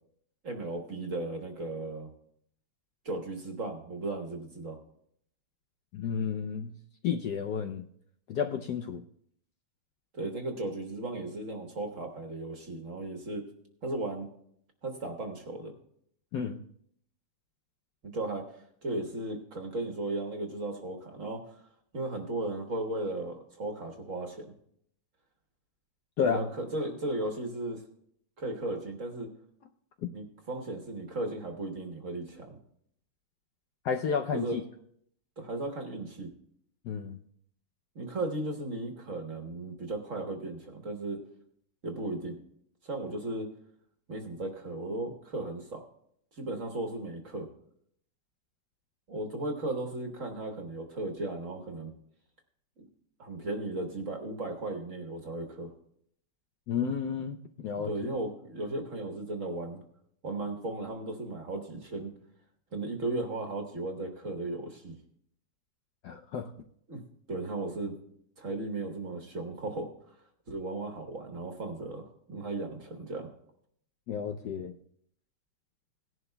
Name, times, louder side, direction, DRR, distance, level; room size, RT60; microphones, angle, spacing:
voice 1, 0.4-2.1 3.0-4.8 10.1-13.4 13.8-14.3 14.8-15.7 18.1-18.4 18.8-21.4 21.9-24.5 26.2-27.8 28.4-29.3 30.1-32.6 34.3-34.6 35.4-36.3 37.9-41.2 41.8-42.4 42.8-43.5 44.1-45.8 46.4-47.5 49.1-51.9 52.8-52.9 53.2-55.7 57.7-59.8 60.2-62.1 62.7-65.0 66.9-67.0 67.3-68.0 68.4-69.9 70.5-73.3, right 2 dB, 45° right, 4 dB, 1.4 m, -36 dB
voice 2, 5.9-6.7 7.0-7.9 8.3-9.0 16.3-16.6 26.2-26.5 33.8-34.6 36.8-37.2 56.7-58.1 66.0-66.5 74.1-74.7, left 7 dB, 70° left, 4 dB, 1.0 m, -31 dB
18.0 x 11.0 x 2.2 m, 0.69 s
omnidirectional pair, 2.2 m